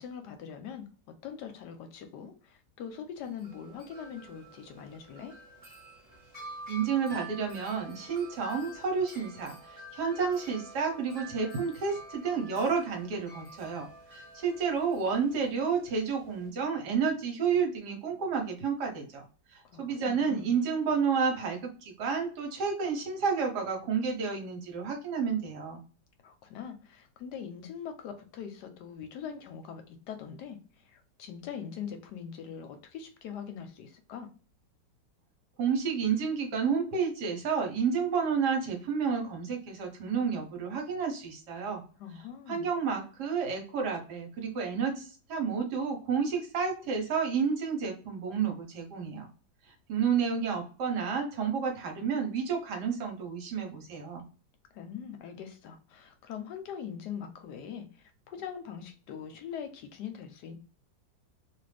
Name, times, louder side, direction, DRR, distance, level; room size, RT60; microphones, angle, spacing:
voice 1, 0.0-5.3 19.6-20.5 26.2-34.3 42.0-42.7 54.7-60.5, left 8 dB, 75° left, 7 dB, 1.1 m, -42 dB
Wind chime, 3.2-16.5, right 1 dB, 5° left, 1.3 m, -48 dB
voice 2, 6.7-19.3 19.5-25.8 35.6-41.8 42.5-49.3 49.9-54.2, right 6 dB, 70° right, 2 dB, 1.4 m, -30 dB
2.8 x 2.4 x 3.3 m, 0.39 s
omnidirectional pair, 1.9 m